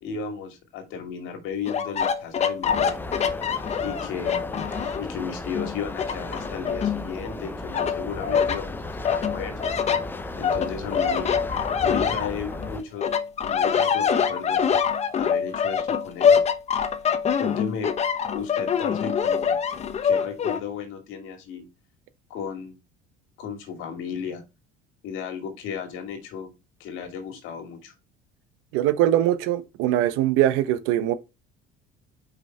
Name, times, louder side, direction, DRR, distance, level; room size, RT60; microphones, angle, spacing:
voice 1, 0.0-3.1 3.8-4.7 5.0-9.8 10.4-11.4 11.8-13.1 13.4-14.7 15.1-16.4 17.3-17.9 18.3-19.6 20.0-21.7 22.3-22.8 23.4-24.4 25.0-26.5 26.8-27.9, left 6 dB, 75° left, 2.5 m, -34 dB
sound 1, 1.7-5.1 5.5-7.3 7.7-8.6 9.0-12.7 13.0-20.6, left 7 dB, 30° left, 0.9 m, -24 dB
sound 2, 2.6-12.8, left 2 dB, 10° left, 0.6 m, -35 dB
voice 2, 28.7-31.1, right 12 dB, 80° right, 1.0 m, -22 dB
5.7 x 5.4 x 4.4 m
cardioid pair, 130°, 21 cm